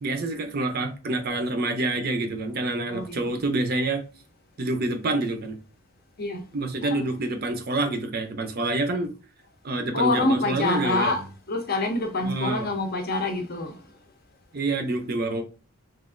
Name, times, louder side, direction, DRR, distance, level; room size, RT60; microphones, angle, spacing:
voice 1, 0.0-4.0 4.6-5.6 6.5-9.1 9.6-11.1 12.2-12.7 14.5-15.4, right 2 dB, 45° right, 0.4 m, -27 dB
voice 2, 2.9-3.3 6.2-6.4 6.8-7.0 9.9-13.8, left 2 dB, 45° left, 0.5 m, -26 dB
3.0 x 2.4 x 2.4 m
head